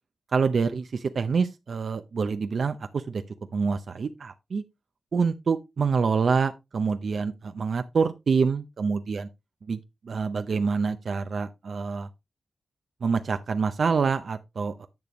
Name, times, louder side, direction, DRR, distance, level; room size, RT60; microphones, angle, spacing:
voice 1, 0.3-3.2 3.5-4.6 5.1-9.3 9.6-12.1 13.0-14.9, right 5 dB, 60° right, 0.6 m, -26 dB
10.5 x 6.8 x 3.0 m
wide cardioid pair, 90°, 0 cm